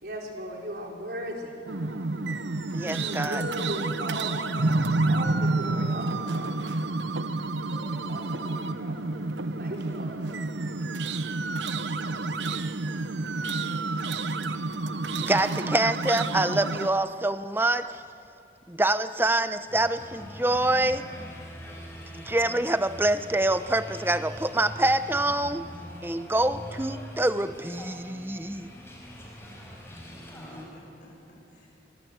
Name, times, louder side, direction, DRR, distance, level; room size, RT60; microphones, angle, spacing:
voice 1, 0.0-1.5 2.9-6.6 7.7-9.0 9.6-10.2, right 1 dB, 60° right, -1 dB, 4.8 m, -37 dB
sound 1, 1.7-16.9, right 2 dB, 85° right, 0.9 m, -29 dB
voice 2, 2.7-3.4 15.2-17.9 18.7-21.0 22.1-25.7 26.0-28.7, right 1 dB, 10° right, 11 dB, 0.8 m, -26 dB
sound 2, 19.7-30.6, equal, 15° left, 5.2 m, -43 dB
voice 3, 30.1-31.7, equal, 45° left, -3 dB, 7.3 m, -49 dB
26.5 x 23.5 x 8.1 m, 2.5 s
head